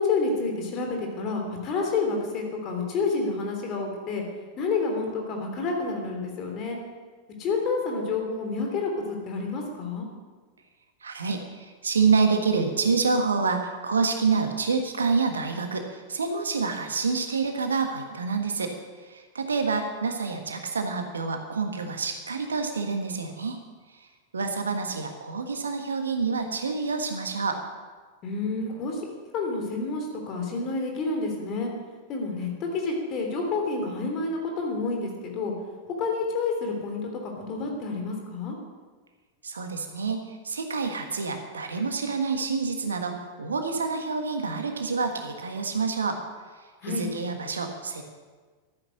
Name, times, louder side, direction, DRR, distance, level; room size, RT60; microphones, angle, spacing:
voice 1, 0.0-4.2 4.6-6.8 7.4-10.1 28.2-29.0 29.3-31.7 32.1-35.5 36.0-38.5 46.8-47.1, left 3 dB, 35° left, 2 dB, 3.3 m, -29 dB
voice 2, 11.0-18.7 19.0-23.6 23.9-24.1 24.3-27.6 39.4-46.2 46.8-48.0, right 4 dB, 70° right, 5 dB, 1.5 m, -27 dB
13.0 x 10.0 x 6.6 m, 1.4 s
figure-of-eight pair, 90°, 0 cm